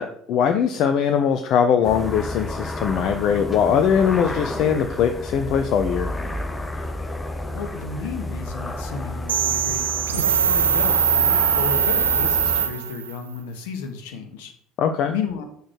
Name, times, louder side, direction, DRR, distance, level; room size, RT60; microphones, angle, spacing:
voice 1, 0.0-6.1 14.8-15.1, left 7 dB, 50° left, 8 dB, 0.7 m, -21 dB
sound 1, 1.8-12.7, left 1 dB, 15° left, 1.3 m, -31 dB
voice 2, 7.5-9.8 10.1-14.5 15.1-15.4, left 6 dB, 65° left, 6 dB, 1.4 m, -33 dB
sound 2, 9.3-13.2, right 7 dB, 80° right, 0.5 m, -21 dB
8.2 x 6.3 x 4.7 m, 0.68 s
figure-of-eight pair, 65°, 0 cm